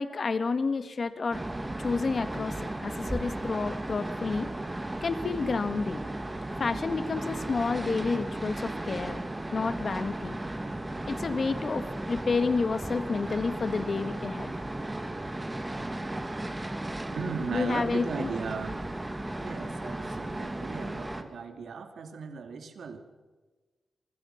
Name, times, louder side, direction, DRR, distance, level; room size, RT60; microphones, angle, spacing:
voice 1, 0.0-1.4 1.8-4.5 5.0-6.0 6.6-9.2 9.5-10.4 11.1-14.5 17.5-18.3, left 4 dB, 45° left, 10 dB, 1.7 m, -30 dB
sound 1, 1.3-21.2, right 1 dB, 15° right, 1.9 m, -35 dB
voice 2, 17.1-18.8 19.4-23.0, right 5 dB, 75° right, 7 dB, 2.7 m, -37 dB
27.5 x 24.5 x 5.9 m, 1.3 s
wide cardioid pair, 150°, 0 cm